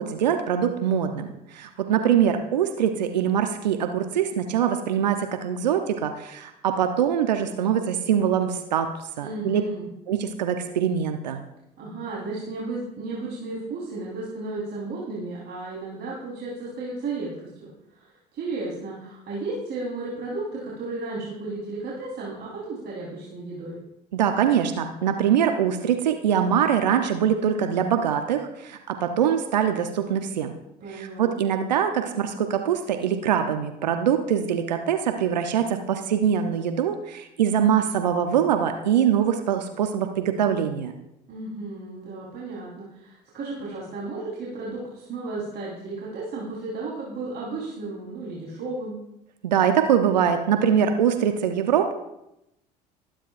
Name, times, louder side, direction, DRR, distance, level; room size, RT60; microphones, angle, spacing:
voice 1, 0.0-8.9 9.2-9.6 10.1-11.4 24.1-30.5 30.9-40.9 49.4-51.9, right 8 dB, 85° right, 6 dB, 0.8 m, -23 dB
voice 2, 9.2-9.9 11.8-23.8 30.8-31.3 41.3-49.0, right 3 dB, 50° right, -5 dB, 4.1 m, -34 dB
20.0 x 10.0 x 2.6 m, 0.86 s
hypercardioid pair, 60°, 21 cm